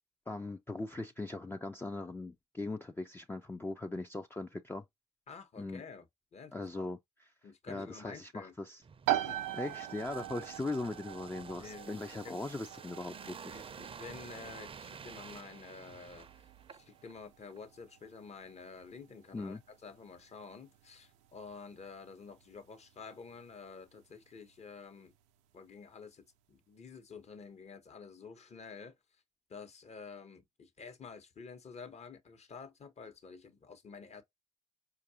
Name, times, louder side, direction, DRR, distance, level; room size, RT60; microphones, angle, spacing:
voice 1, 0.3-4.8 5.6-5.8 6.5-7.3 7.7-8.8 9.5-13.6 19.3-19.6, left 2 dB, 15° left, 0.4 m, -40 dB
voice 2, 5.3-6.1 6.3-6.9 7.4-8.5 9.3-9.4 11.6-11.9 12.2-12.4 13.5-16.3 16.7-25.1 25.5-29.0 29.5-34.2, left 5 dB, 45° left, 1.1 m, -50 dB
sound 1, 8.8-17.2 17.5-17.6, right 6 dB, 35° right, 0.5 m, -51 dB
sound 2, 9.1-23.6, right 13 dB, 90° right, 0.5 m, -42 dB
4.7 x 2.5 x 2.8 m
hypercardioid pair, 55°, 16 cm